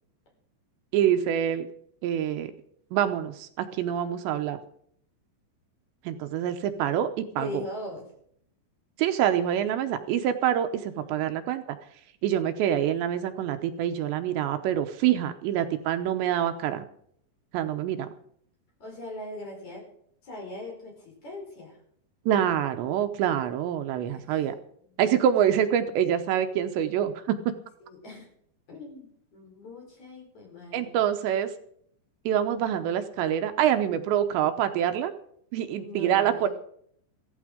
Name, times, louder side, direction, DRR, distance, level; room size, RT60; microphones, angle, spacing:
voice 1, 0.9-1.7 2.0-2.5 2.9-4.6 6.0-7.6 9.0-11.8 12.2-16.8 17.5-18.1 22.3-24.5 25.0-27.5 30.7-31.5 32.3-35.1 35.5-36.5, right 10 dB, 80° right, 8 dB, 3.0 m, -26 dB
voice 2, 7.4-8.1 10.9-11.3 18.8-19.9 20.2-21.8 24.1-24.4 24.9-25.0 27.8-28.3 28.7-31.0 35.8-36.5, left 2 dB, 40° left, -1 dB, 6.0 m, -41 dB
15.5 x 15.0 x 5.1 m, 0.66 s
omnidirectional pair, 5.2 m